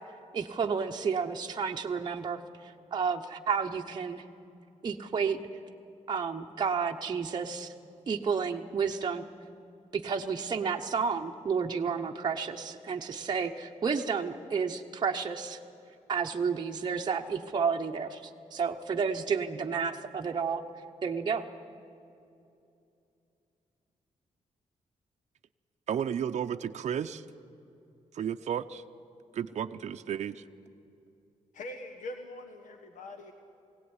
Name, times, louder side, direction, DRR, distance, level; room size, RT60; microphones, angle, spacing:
voice 1, 0.3-4.3 4.8-5.4 6.1-7.7 8.1-9.2 9.9-15.6 16.1-20.6 21.0-21.5, right 6 dB, 35° right, 1 dB, 0.9 m, -31 dB
voice 2, 25.9-27.2 28.1-28.8 29.3-30.4, right 8 dB, 60° right, 7 dB, 0.6 m, -33 dB
voice 3, 31.5-33.3, left 2 dB, 85° left, 5 dB, 1.4 m, -42 dB
20.5 x 17.0 x 9.7 m, 2.6 s
wide cardioid pair, 145°, 13 cm